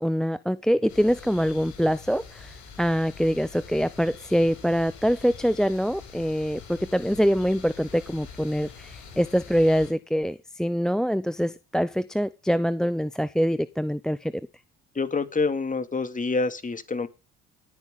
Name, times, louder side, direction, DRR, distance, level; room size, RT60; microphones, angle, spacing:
voice 1, 0.0-14.3, equal, ahead, 0.7 m, -24 dB
sound 1, 0.9-9.9, left 5 dB, 75° left, 7.1 m, -45 dB
voice 2, 15.0-17.1, left 4 dB, 25° left, 2.4 m, -27 dB
19.5 x 9.7 x 3.8 m
hypercardioid pair, 60°, 31 cm